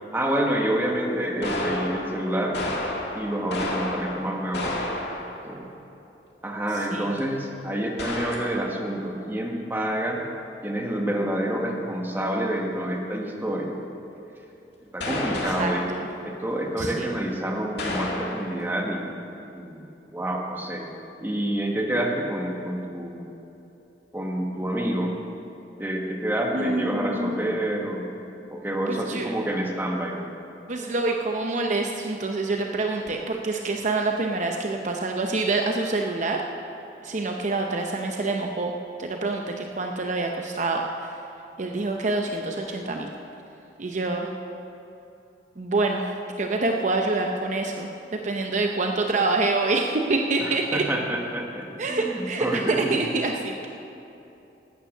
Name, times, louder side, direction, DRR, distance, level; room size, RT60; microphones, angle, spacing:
voice 1, 0.1-2.6 3.1-4.7 5.4-5.6 6.4-10.2 10.6-13.8 14.9-19.1 19.5-20.9 21.2-23.2 24.1-25.1 25.8-28.1 28.5-30.2 50.4-53.0, right 1 dB, 10° right, 0 dB, 1.3 m, -28 dB
sound 1, 1.4-5.5 7.2-7.3 8.0-8.6 15.0-16.0 17.8-18.6, left 1 dB, 70° left, 2.0 m, -31 dB
voice 2, 15.3-16.0 16.8-17.1 26.5-27.3 28.9-29.3 30.7-36.4 37.0-38.7 39.0-41.2 41.6-43.1 43.8-44.3 45.6-46.1 46.4-47.9 48.2-50.8 51.8-53.7, right 3 dB, 45° right, 2 dB, 0.7 m, -26 dB
13.0 x 9.2 x 6.4 m, 2.9 s
head